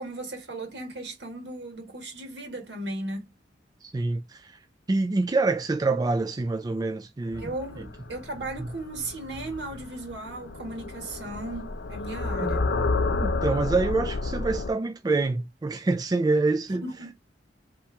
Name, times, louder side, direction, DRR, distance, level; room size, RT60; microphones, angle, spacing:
voice 1, 0.0-3.3 7.4-12.7 16.8-17.1, right 2 dB, 70° right, 1.8 m, -36 dB
voice 2, 3.8-4.6 4.9-7.5 8.6-8.7 12.4-12.5 13.2-16.8, right 3 dB, 20° right, 0.3 m, -26 dB
sound 1, 7.3-14.7, left 3 dB, 75° left, 0.6 m, -31 dB
3.3 x 3.0 x 4.5 m
head